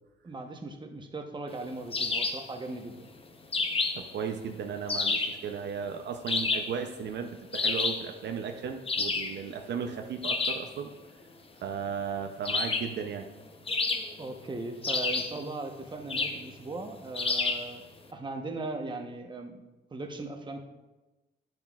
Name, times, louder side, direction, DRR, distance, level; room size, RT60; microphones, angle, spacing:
voice 1, 0.2-3.1 14.2-17.8 18.1-19.6 19.9-20.6, right 2 dB, 25° right, 3 dB, 1.0 m, -38 dB
sound 1, 1.9-2.5 3.5-4.1 4.9-5.4 6.3-6.8 7.5-8.1 8.9-9.4 10.2-10.7 12.5-13.0 13.7-14.3 14.8-15.4 16.1-16.5 17.2-17.7, left 3 dB, 30° left, 0.8 m, -29 dB
voice 2, 3.9-10.9 11.6-13.3, right 7 dB, 60° right, 4 dB, 0.6 m, -35 dB
9.7 x 7.4 x 2.4 m, 1.1 s
cardioid pair, 90°, 20 cm